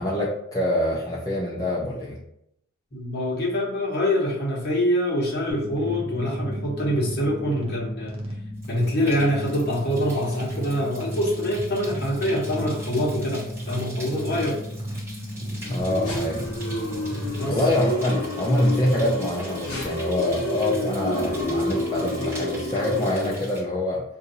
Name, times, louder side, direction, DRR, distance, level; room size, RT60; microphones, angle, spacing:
voice 1, 0.0-2.2 15.7-16.5 17.5-24.0, left 1 dB, 15° left, -6 dB, 0.4 m, -25 dB
voice 2, 2.9-8.2 8.7-14.6 17.3-17.6, equal, 50° left, -4 dB, 1.1 m, -25 dB
sound 1, 5.5-17.7, equal, 30° right, 0.6 m, -34 dB
sound 2, 8.6-23.6, right 1 dB, 10° right, 1.3 m, -43 dB
sound 3, 15.6-23.4, left 1 dB, 85° left, 0.7 m, -29 dB
2.7 x 2.6 x 3.9 m, 0.77 s
head